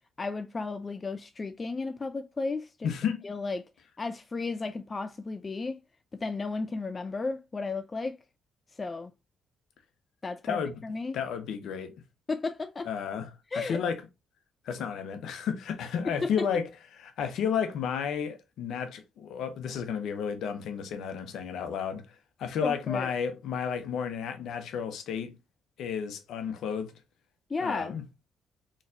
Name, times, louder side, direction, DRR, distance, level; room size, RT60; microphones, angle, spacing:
voice 1, 0.2-2.9 3.2-3.6 4.0-5.8 6.2-8.2 8.8-9.1 10.2-11.2 12.3-12.9 13.5-13.8 16.1-16.5 22.6-23.1 27.5-27.9, left 3 dB, 35° left, 0.4 m, -33 dB
voice 2, 2.8-3.3 10.4-10.8 11.1-11.9 12.9-14.0 14.6-16.7 17.0-25.4 25.8-26.9 27.6-28.0, left 7 dB, 65° left, 0.8 m, -32 dB
4.1 x 3.1 x 2.5 m
hypercardioid pair, 50°, 0 cm